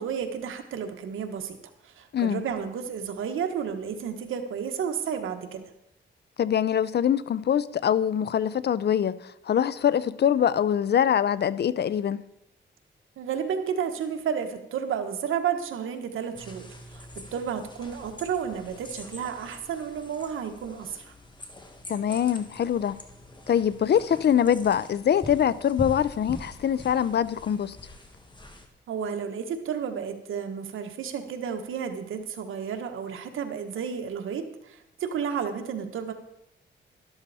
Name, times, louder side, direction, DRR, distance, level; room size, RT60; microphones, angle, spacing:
voice 1, 0.0-1.6 1.8-5.6 13.2-21.1 28.9-36.1, right 7 dB, 90° right, 1.4 m, -32 dB
voice 2, 6.4-9.2 9.5-12.2 21.9-23.0 23.5-27.8, left 9 dB, 55° left, 0.6 m, -24 dB
sound 1, 16.3-28.7, left 2 dB, 25° left, 1.9 m, -44 dB
12.5 x 12.5 x 4.2 m
cardioid pair, 90°, 20 cm